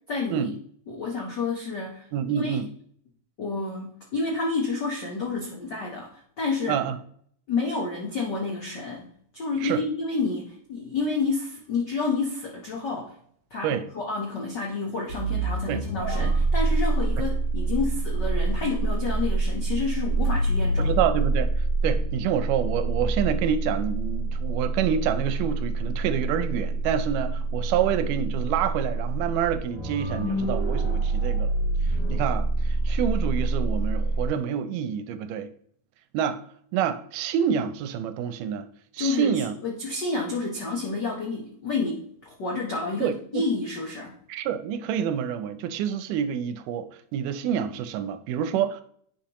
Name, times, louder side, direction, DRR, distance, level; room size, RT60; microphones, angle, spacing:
voice 1, 0.1-0.5 0.9-2.1 2.3-2.6 3.4-6.8 7.5-9.1 9.3-13.1 13.5-21.0 39.0-44.1, left 3 dB, 70° left, 1.0 m, -29 dB
voice 2, 2.1-2.7 6.7-7.0 9.6-9.8 13.6-13.9 15.7-15.8 20.8-21.5 21.8-31.5 31.8-35.5 36.1-36.4 36.7-38.6 38.9-39.5 43.0-43.4 44.3-46.9 47.1-48.8, right 8 dB, 85° right, 2.2 m, -27 dB
sound 1, 15.1-34.3, right 2 dB, 25° left, 2.9 m, -26 dB
10.5 x 5.3 x 3.0 m
omnidirectional pair, 3.7 m